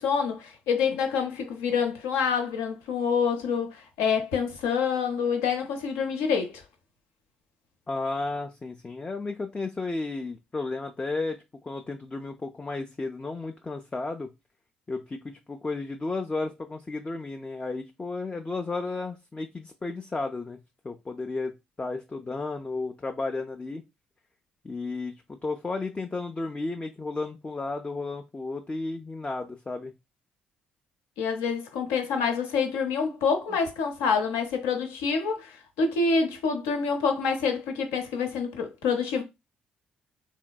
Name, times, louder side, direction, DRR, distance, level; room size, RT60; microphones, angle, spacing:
voice 1, 0.0-6.6 31.2-39.2, left 5 dB, 70° left, 0.6 m, -27 dB
voice 2, 7.9-14.3 14.9-20.6 20.8-23.8 24.6-29.9, left 3 dB, 20° left, 0.4 m, -33 dB
3.5 x 2.6 x 2.2 m
figure-of-eight pair, 45°, 5 cm